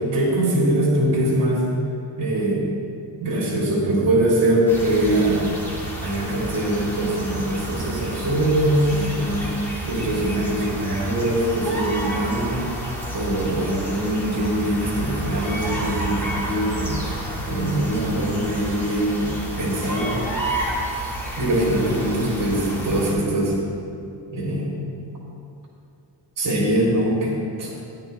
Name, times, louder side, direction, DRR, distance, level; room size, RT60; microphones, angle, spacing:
voice 1, 0.0-1.6 2.2-2.7 3.2-5.5 6.0-9.5 9.9-12.7 13.1-20.5 21.4-23.5 24.3-24.7 26.4-27.7, right 1 dB, 50° right, -5 dB, 3.3 m, -22 dB
sound 1, 4.7-23.1, right 1 dB, 5° left, 2.2 m, -30 dB
16.0 x 10.5 x 3.4 m, 2.5 s
wide cardioid pair, 150°, 41 cm